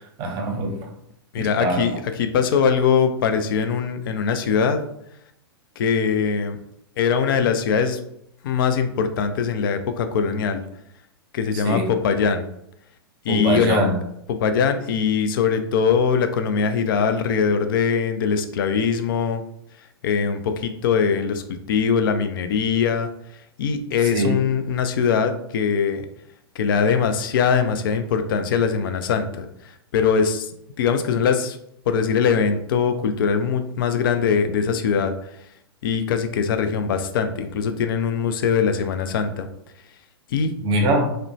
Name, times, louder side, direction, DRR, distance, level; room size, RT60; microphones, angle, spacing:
voice 1, 0.2-0.9 1.4-1.8 11.6-11.9 13.3-14.0 24.1-24.4 40.6-41.1, right 1 dB, 35° right, 3 dB, 0.6 m, -22 dB
voice 2, 1.3-4.8 5.8-6.6 7.0-8.0 8.4-10.6 11.3-12.5 13.2-13.9 14.3-19.4 20.0-23.1 23.6-26.1 26.6-30.5 30.8-31.6 31.9-35.1 35.8-39.5 40.3-40.5, left 6 dB, 60° left, 8 dB, 0.4 m, -22 dB
2.8 x 2.1 x 2.6 m, 0.74 s
figure-of-eight pair, 100°, 13 cm